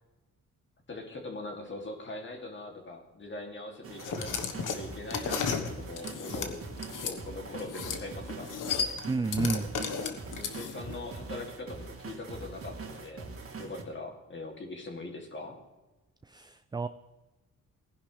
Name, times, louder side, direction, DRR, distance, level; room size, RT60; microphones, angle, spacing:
voice 1, 0.9-4.3 4.7-6.7 7.0-8.5 10.3-13.3 13.6-15.6, left 2 dB, 35° left, 1 dB, 2.7 m, -41 dB
sound 1, 3.8-13.8, right 3 dB, 45° right, 2.1 m, -43 dB
sound 2, 4.0-7.2 7.6-8.0 8.3-10.9, left 6 dB, 75° left, 1.4 m, -34 dB
voice 2, 9.1-9.7 16.2-16.9, right 3 dB, 15° right, 11 dB, 0.3 m, -30 dB
18.5 x 11.0 x 3.4 m, 1.1 s
cardioid pair, 115°, 32 cm